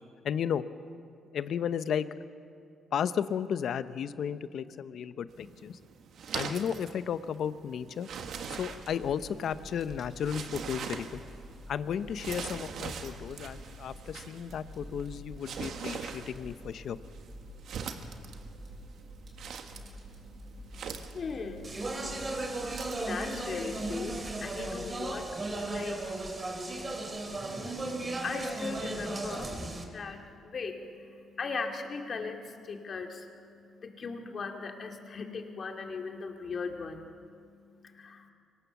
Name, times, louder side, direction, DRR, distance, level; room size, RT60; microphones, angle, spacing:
voice 1, 0.2-0.6 1.3-2.1 2.9-5.8 6.3-8.1 8.5-11.2 11.7-17.0, left 8 dB, 65° left, 13 dB, 0.8 m, -33 dB
sound 1, 5.3-23.1, right 6 dB, 70° right, 1.5 m, -43 dB
Fire, 8.1-24.9, equal, 50° right, 6.4 m, -49 dB
voice 2, 19.7-38.3, left 4 dB, 50° left, 3 dB, 2.3 m, -40 dB
Speech, 21.6-29.8, right 2 dB, 30° right, 2.9 m, -36 dB
24.0 x 18.5 x 7.1 m, 2.4 s
cardioid pair, 95°, 0 cm